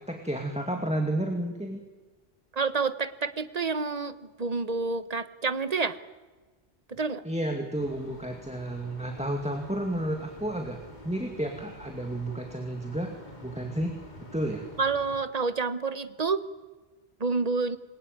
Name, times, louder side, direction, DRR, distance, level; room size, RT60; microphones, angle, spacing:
voice 1, 0.0-1.8 7.2-10.8 11.0-13.1 13.4-14.0 14.3-14.7, right 1 dB, 5° right, 3 dB, 2.2 m, -31 dB
voice 2, 2.5-6.0 6.9-7.2 14.8-16.4 17.2-17.8, right 4 dB, 40° right, 12 dB, 1.3 m, -28 dB
sound 1, 7.8-15.2, left 1 dB, 45° left, 2.9 m, -48 dB
26.5 x 22.0 x 9.4 m, 1.3 s
omnidirectional pair, 1.1 m